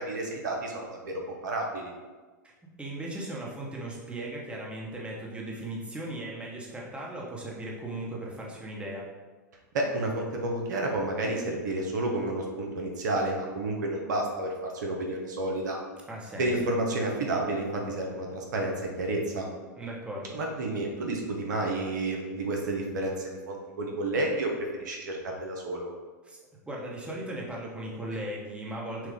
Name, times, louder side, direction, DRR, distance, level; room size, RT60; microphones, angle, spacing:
voice 1, 0.0-1.9 9.7-15.8 16.4-19.5 20.3-25.9, right 2 dB, 75° right, 0 dB, 0.8 m, -30 dB
voice 2, 2.8-9.1 16.1-16.5 19.8-20.4 26.2-26.4 26.7-29.1, right 1 dB, 10° right, -3 dB, 1.0 m, -37 dB
5.9 x 2.4 x 3.6 m, 1.3 s
hypercardioid pair, 100°, 10 cm